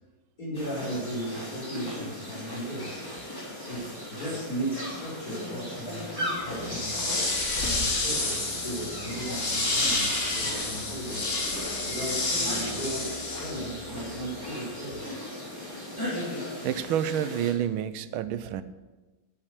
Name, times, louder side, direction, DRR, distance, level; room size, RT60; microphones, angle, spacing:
voice 1, 0.4-3.1 3.7-7.1 7.6-11.4 11.9-15.2 18.2-18.3, right 1 dB, 45° left, -5 dB, 5.8 m, -36 dB
sound 1, 0.5-17.5, left 1 dB, 10° left, 3.1 m, -37 dB
sound 2, 6.6-13.8, left 2 dB, 60° left, 3.0 m, -29 dB
voice 2, 16.6-18.6, right 10 dB, 90° right, 13 dB, 1.5 m, -29 dB
8.8 x 8.7 x 8.2 m, 1.2 s
omnidirectional pair, 2.2 m